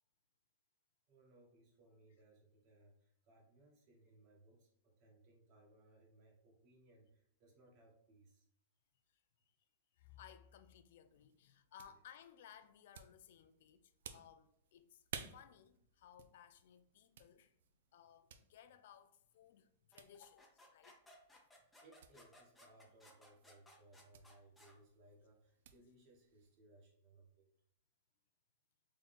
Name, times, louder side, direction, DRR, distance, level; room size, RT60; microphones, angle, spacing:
voice 1, 1.1-8.4 21.8-27.5, right 2 dB, 45° right, 1.3 m, -66 dB
voice 2, 9.9-15.0 15.3-17.5 17.9-21.0, left 9 dB, 65° left, 0.3 m, -61 dB
sound 1, 11.0-26.6, right 7 dB, 75° right, 0.4 m, -58 dB
sound 2, 19.9-24.8, left 1 dB, 5° left, 0.7 m, -63 dB
3.6 x 2.3 x 4.1 m
hypercardioid pair, 135°, 0 cm